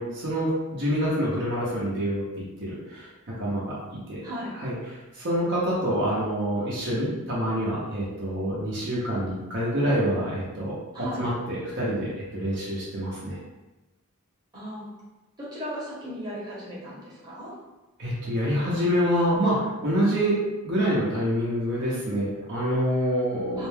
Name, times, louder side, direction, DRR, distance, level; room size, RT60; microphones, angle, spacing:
voice 1, 0.0-2.2 2.6-3.1 3.4-3.7 4.1-4.2 4.5-10.7 11.2-13.4 18.0-20.4 20.6-23.7, equal, 55° right, -7 dB, 0.7 m, -26 dB
voice 2, 4.2-4.5 10.9-11.2 14.5-14.9 15.4-17.5 23.6-23.7, equal, 20° right, -9 dB, 0.9 m, -36 dB
2.5 x 2.2 x 3.2 m, 1.1 s
head